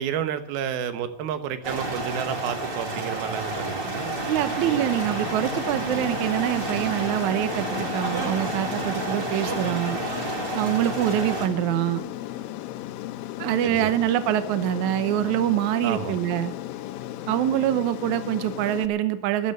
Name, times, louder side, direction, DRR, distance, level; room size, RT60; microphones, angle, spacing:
voice 1, 0.0-4.1 13.6-13.9 15.8-16.1, right 9 dB, 90° right, 9 dB, 3.0 m, -30 dB
sound 1, 1.6-11.5, right 2 dB, 40° right, 0.7 m, -30 dB
voice 2, 4.3-10.0 10.5-12.0 13.4-16.5 17.3-19.5, right 12 dB, 70° right, 11 dB, 2.0 m, -25 dB
Aircraft, 4.6-18.9, left 13 dB, 80° left, 2.5 m, -35 dB
14.0 x 11.5 x 6.6 m, 0.73 s
omnidirectional pair, 4.2 m